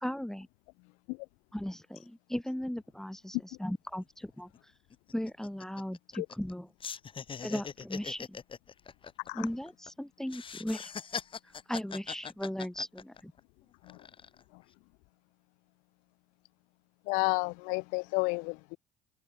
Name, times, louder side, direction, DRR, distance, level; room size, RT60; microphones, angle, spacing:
voice 1, 0.0-0.5 1.5-4.5 5.1-6.7 7.4-8.4 9.3-10.9 11.7-13.3, equal, 5° left, 0.9 m, -37 dB
sound 1, 4.0-4.1 4.4-4.6 4.9-6.5 6.8-9.9 10.3-13.4 13.8-14.4, left 6 dB, 40° left, 2.3 m, -41 dB
voice 2, 17.1-18.8, left 31 dB, 80° left, 0.6 m, -32 dB
hypercardioid pair, 65°, 13 cm